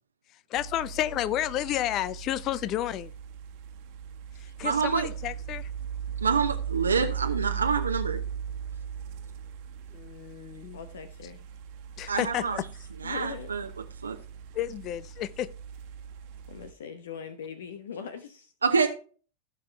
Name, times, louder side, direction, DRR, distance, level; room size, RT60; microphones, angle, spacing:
voice 1, 0.5-3.1 4.4-5.7 9.9-10.8 12.0-12.7 14.5-15.5, left 13 dB, 35° left, 0.6 m, -31 dB
sound 1, 0.5-16.7, right 8 dB, 45° right, 1.4 m, -38 dB
voice 2, 4.6-5.1 6.2-8.2 12.1-12.6 13.0-13.7 14.0-14.2 18.6-18.9, right 5 dB, 75° right, 0.9 m, -26 dB
voice 3, 10.7-11.4 13.0-13.5 16.5-18.5, left 6 dB, 60° left, 1.0 m, -40 dB
16.0 x 5.9 x 3.3 m
figure-of-eight pair, 90°, 0 cm